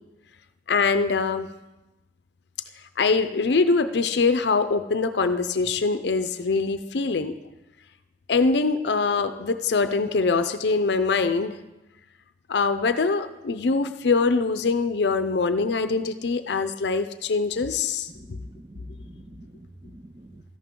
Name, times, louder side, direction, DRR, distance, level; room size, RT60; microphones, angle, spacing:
voice 1, 0.7-1.5 3.0-7.4 8.3-11.6 12.5-18.1, left 4 dB, 80° left, 10 dB, 0.5 m, -23 dB
voice 2, 18.1-20.4, right 2 dB, 25° right, 6 dB, 0.4 m, -47 dB
13.0 x 11.0 x 3.7 m, 1.0 s
head